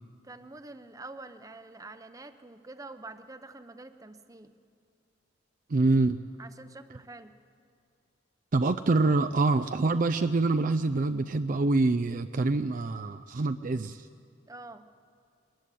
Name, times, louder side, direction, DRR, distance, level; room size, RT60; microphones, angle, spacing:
voice 1, 0.2-4.5 6.4-7.3 14.5-14.8, right 2 dB, 20° right, 10 dB, 0.8 m, -46 dB
voice 2, 5.7-6.2 8.5-14.1, right 3 dB, 45° right, 9 dB, 0.5 m, -25 dB
21.5 x 14.0 x 10.0 m, 2.4 s
head